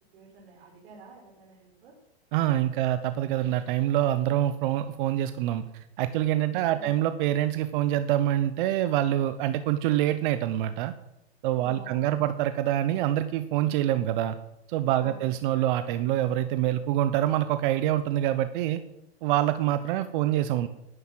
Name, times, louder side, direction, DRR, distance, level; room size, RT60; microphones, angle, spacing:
voice 1, 0.1-1.9 6.4-7.0 11.6-12.3 15.0-15.3 20.0-20.5, right 3 dB, 70° right, -2 dB, 4.4 m, -49 dB
voice 2, 2.3-10.9 11.4-14.4 14.7-18.8 19.2-20.7, right 12 dB, 50° right, 11 dB, 0.9 m, -26 dB
11.0 x 9.8 x 7.5 m, 0.87 s
hypercardioid pair, 135°, 32 cm